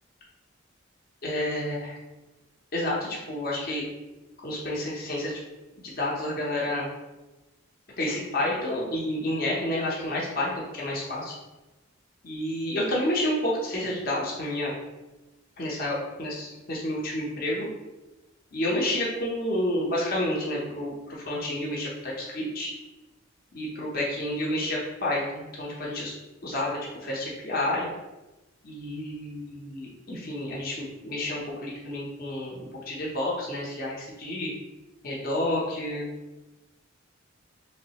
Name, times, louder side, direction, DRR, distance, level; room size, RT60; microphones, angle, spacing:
voice 1, 1.2-2.0 2.7-3.9 4.4-5.4 5.8-6.9 8.0-11.3 12.2-14.7 15.6-17.7 18.5-22.7 23.5-26.1 26.4-27.9 28.6-34.5 35.0-36.1, left 1 dB, 50° left, -5 dB, 0.7 m, -30 dB
3.5 x 3.1 x 2.8 m, 1.1 s
head